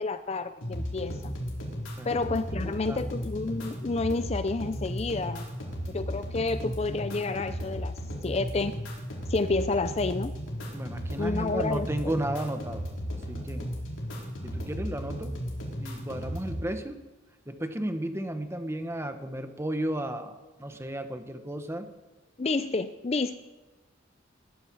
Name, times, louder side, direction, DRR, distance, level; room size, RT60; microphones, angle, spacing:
voice 1, 0.0-1.3 2.0-5.5 5.9-8.7 9.3-10.3 11.2-12.1 22.4-23.4, left 3 dB, 30° left, 11 dB, 0.5 m, -30 dB
sound 1, 0.6-16.6, equal, 85° left, 4.4 m, -35 dB
voice 2, 2.5-3.1 10.7-13.7 14.4-15.4 15.8-17.0 17.5-21.9, right 1 dB, 15° right, 7 dB, 1.2 m, -34 dB
20.0 x 13.5 x 4.8 m, 1.2 s
head